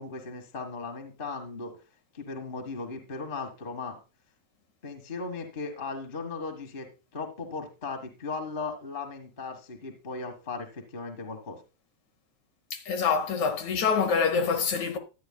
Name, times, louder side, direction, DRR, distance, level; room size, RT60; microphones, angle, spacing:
voice 1, 0.0-1.7 2.1-4.0 4.8-6.9 7.1-11.6, left 4 dB, 30° left, 0.9 m, -37 dB
voice 2, 12.7-15.0, left 6 dB, 65° left, 2.4 m, -26 dB
12.5 x 9.9 x 2.3 m
omnidirectional pair, 4.0 m